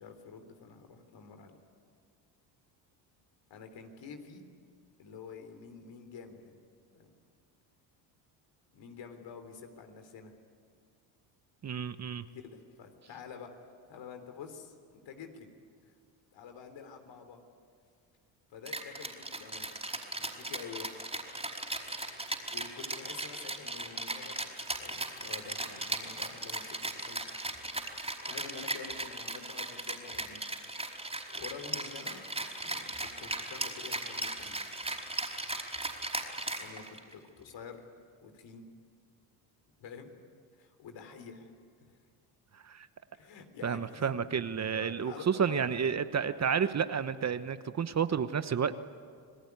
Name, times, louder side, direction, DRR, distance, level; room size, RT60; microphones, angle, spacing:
voice 1, 0.0-1.6 3.5-4.4 5.0-6.6 6.9-7.1 8.7-10.3 12.3-13.5 13.9-15.5 15.8-15.9 16.3-17.4 18.5-19.7 20.2-20.9 22.5-24.5 24.8-27.2 28.2-30.4 31.3-32.2 32.6-34.6 36.6-37.8 38.2-38.7 39.8-40.1 40.5-41.5 41.8-42.0 43.1-44.2 44.6-45.9, left 6 dB, 60° left, 7 dB, 3.6 m, -48 dB
voice 2, 11.6-12.2 42.6-42.9 43.6-48.7, right 7 dB, 35° right, 12 dB, 1.0 m, -31 dB
Rattle (instrument), 18.7-37.1, right 2 dB, 10° right, 4.7 m, -37 dB
28.0 x 19.0 x 9.6 m, 2.1 s
supercardioid pair, 80°, 49 cm